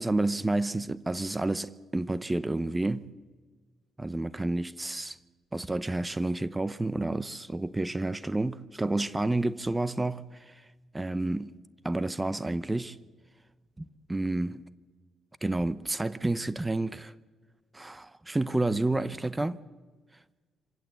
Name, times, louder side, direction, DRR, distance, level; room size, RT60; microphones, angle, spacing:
voice 1, 0.0-3.1 4.0-5.2 5.5-10.6 10.9-11.5 11.8-13.0 13.8-14.6 15.4-17.1 17.7-19.6, right 2 dB, 15° right, 0.7 m, -30 dB
26.5 x 17.0 x 8.0 m
cardioid pair, 90°, 0 cm